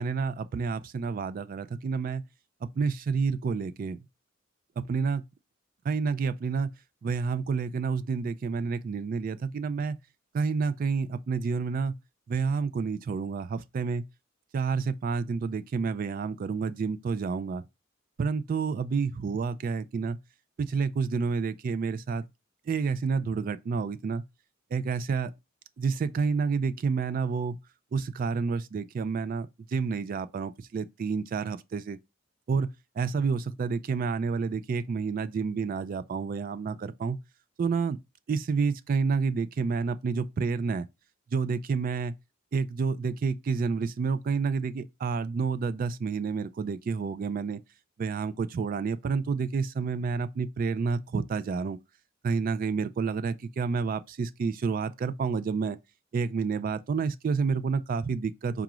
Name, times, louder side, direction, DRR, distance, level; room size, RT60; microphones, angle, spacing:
voice 1, 0.0-2.2 2.6-4.0 4.8-5.2 5.9-6.7 7.0-10.0 10.3-12.0 12.3-14.1 14.5-17.6 18.2-20.2 20.6-22.2 22.7-24.2 24.7-25.3 25.8-27.6 27.9-32.0 32.5-37.2 37.6-38.0 38.3-40.8 41.3-42.2 42.5-47.6 48.0-51.8 52.2-55.8 56.1-58.6, right 5 dB, 45° right, 0.3 m, -29 dB
4.8 x 2.4 x 2.9 m
head